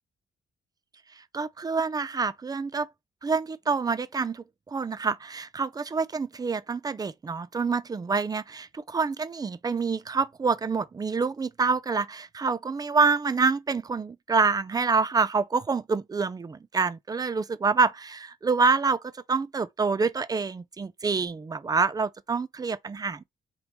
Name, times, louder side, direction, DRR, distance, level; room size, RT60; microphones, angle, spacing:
voice 1, 1.3-2.9 3.2-23.2, right 4 dB, 25° right, 0.5 m, -27 dB
4.4 x 2.9 x 3.5 m
cardioid pair, 95°, 15 cm